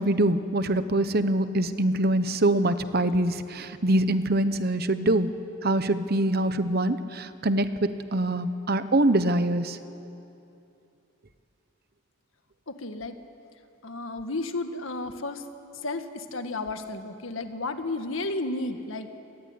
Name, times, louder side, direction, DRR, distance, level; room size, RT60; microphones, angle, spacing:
voice 1, 0.0-5.3 5.6-9.8, right 1 dB, 50° right, 11 dB, 1.1 m, -24 dB
voice 2, 12.7-13.2 13.8-15.4 15.7-19.1, left 2 dB, 80° left, 7 dB, 1.7 m, -32 dB
26.5 x 19.0 x 9.7 m, 2.7 s
head